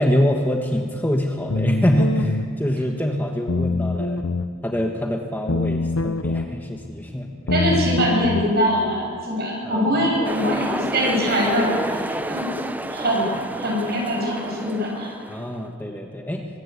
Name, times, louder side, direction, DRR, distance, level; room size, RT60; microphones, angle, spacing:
voice 1, 0.0-4.2 4.6-7.3 7.7-7.8 9.6-10.1 15.3-16.4, equal, 10° left, 2 dB, 1.2 m, -24 dB
sound 1, 1.5-2.5 3.5-4.5 5.5-6.5 7.5-8.5, left 2 dB, 85° left, 0.9 m, -23 dB
voice 2, 7.5-12.5 12.9-13.3 13.5-15.1, equal, 50° right, -1 dB, 7.2 m, -23 dB
sound 2, 10.2-15.6, right 1 dB, 10° right, 0.6 m, -30 dB
23.5 x 14.0 x 8.3 m, 2.1 s
head